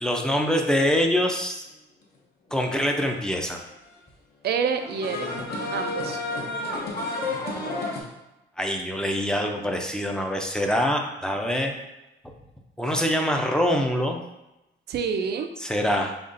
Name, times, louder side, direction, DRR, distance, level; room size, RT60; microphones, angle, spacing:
voice 1, 0.0-1.6 2.5-3.6 8.6-11.8 12.8-14.2 15.6-16.1, equal, 5° left, 2 dB, 0.5 m, -24 dB
voice 2, 4.4-5.3 5.7-6.2 14.9-15.5, right 6 dB, 55° right, 7 dB, 0.4 m, -27 dB
sound 1, 4.7-8.0, left 2 dB, 50° left, 0.9 m, -30 dB
5.2 x 2.4 x 2.6 m, 0.96 s
cardioid pair, 90°, 20 cm